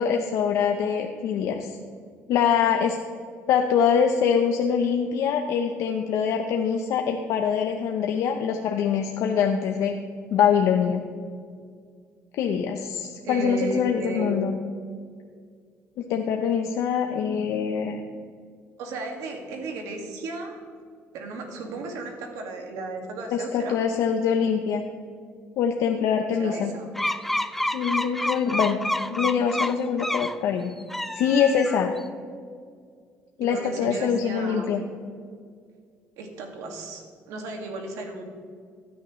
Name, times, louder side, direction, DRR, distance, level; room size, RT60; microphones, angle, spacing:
voice 1, 0.0-1.8 2.3-3.0 3.5-9.9 10.3-11.0 12.4-14.6 16.0-18.0 23.3-24.8 25.6-26.7 27.7-28.8 29.1-30.7 31.1-31.9 33.4-34.8, left 7 dB, 75° left, 4 dB, 0.7 m, -24 dB
voice 2, 13.2-14.4 18.8-20.6 21.1-23.8 26.4-26.9 33.4-34.7 36.2-38.2, right 2 dB, 85° right, 3 dB, 2.0 m, -34 dB
sound 1, 27.0-30.4 30.8-32.0, left 1 dB, 5° left, 0.4 m, -28 dB
15.5 x 9.6 x 3.1 m, 2.1 s
cardioid pair, 105°, 5 cm